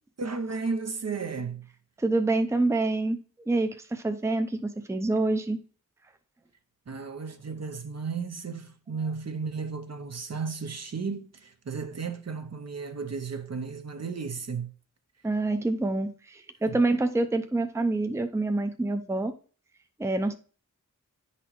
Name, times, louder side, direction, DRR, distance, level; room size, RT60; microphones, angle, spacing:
voice 1, 0.2-1.7 6.9-14.7 16.7-16.8, right 5 dB, 50° right, 0.6 m, -34 dB
voice 2, 2.0-3.2 3.5-5.6 15.2-19.3 20.0-20.3, right 2 dB, 10° right, 0.5 m, -26 dB
9.9 x 4.1 x 3.0 m
wide cardioid pair, 45°, 33 cm